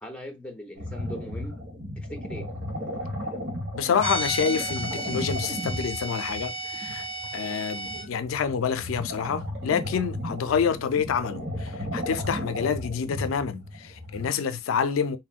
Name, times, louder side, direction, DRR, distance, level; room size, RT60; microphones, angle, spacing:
voice 1, 0.0-1.6 2.0-2.5, left 1 dB, 5° left, 0.5 m, -40 dB
sound 1, 0.7-14.3, left 1 dB, 60° right, 1.2 m, -35 dB
voice 2, 3.7-7.1 7.3-15.2, left 6 dB, 85° left, 0.3 m, -27 dB
sound 2, 4.0-8.1, right 1 dB, 90° right, 0.8 m, -33 dB
3.4 x 2.1 x 2.3 m
head